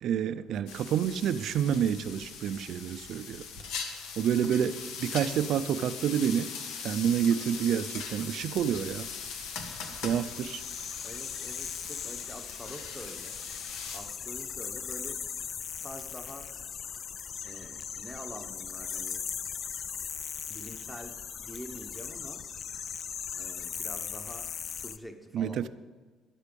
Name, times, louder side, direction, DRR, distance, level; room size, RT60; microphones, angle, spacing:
voice 1, 0.0-3.4 4.2-6.5 6.8-9.1 10.0-10.6 25.3-25.7, right 8 dB, 55° right, 13 dB, 0.5 m, -28 dB
sound 1, 0.7-14.0, left 6 dB, 90° left, 1.6 m, -40 dB
sound 2, 8.5-25.0, left 7 dB, 35° left, 0.4 m, -39 dB
voice 2, 11.0-15.2 15.8-16.5 17.4-19.3 20.5-22.5 23.3-25.7, equal, 5° left, 6 dB, 1.0 m, -46 dB
13.0 x 10.5 x 5.3 m, 1.4 s
cardioid pair, 170°, 0 cm